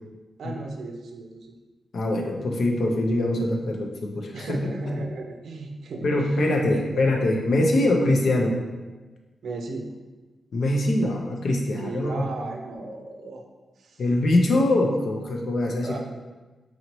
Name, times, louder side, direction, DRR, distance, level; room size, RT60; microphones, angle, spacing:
voice 1, 0.4-1.6 4.3-6.1 6.7-7.0 7.8-8.0 9.4-9.9 11.8-13.4 13.8-14.0 15.8-16.0, right 2 dB, 80° right, 3 dB, 0.4 m, -35 dB
voice 2, 1.9-4.7 6.0-8.5 10.5-12.3 14.0-16.0, left 1 dB, 70° left, 2 dB, 0.5 m, -23 dB
4.0 x 2.9 x 3.0 m, 1.2 s
cardioid pair, 80°, 0 cm